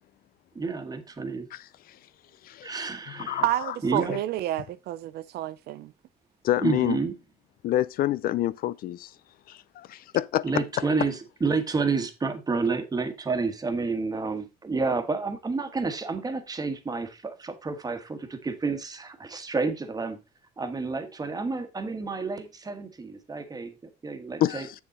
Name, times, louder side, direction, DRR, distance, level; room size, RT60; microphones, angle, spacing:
voice 1, 0.5-1.5 2.6-3.4 3.8-4.1 6.6-7.1 10.4-20.2 20.6-23.7 24.0-24.7, right 4 dB, 20° right, 1.4 m, -29 dB
voice 2, 2.4-2.7 3.2-3.7 4.1-4.2 6.4-7.0 7.6-9.1 9.5-10.4 24.4-24.7, left 13 dB, 60° left, 0.4 m, -27 dB
voice 3, 3.4-5.9, right 14 dB, 70° right, 0.6 m, -29 dB
7.1 x 6.9 x 3.7 m
cardioid pair, 110°, 17 cm